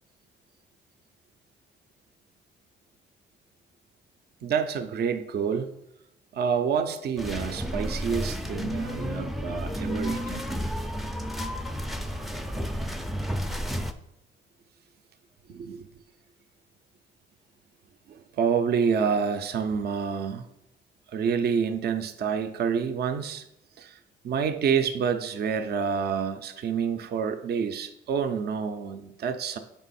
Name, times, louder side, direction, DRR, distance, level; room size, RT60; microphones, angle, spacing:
voice 1, 4.4-5.7 6.3-10.5 15.5-15.9 18.1-20.4 21.1-23.4 23.8-24.0 24.2-29.6, right 6 dB, 55° right, 8 dB, 0.5 m, -28 dB
sound 1, 7.2-13.9, equal, ahead, 0.4 m, -31 dB
5.5 x 4.5 x 4.1 m, 0.83 s
cardioid pair, 90°, 20 cm